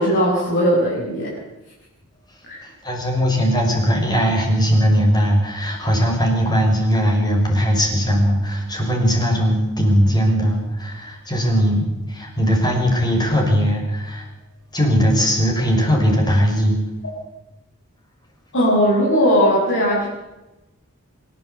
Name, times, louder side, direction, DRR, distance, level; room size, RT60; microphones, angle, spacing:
voice 1, 0.0-1.3 2.4-2.7 18.5-20.1, equal, 60° left, -6 dB, 6.8 m, -18 dB
voice 2, 2.6-14.2 14.7-16.8, equal, 20° left, 1 dB, 6.0 m, -19 dB
25.5 x 13.0 x 8.2 m, 1.0 s
head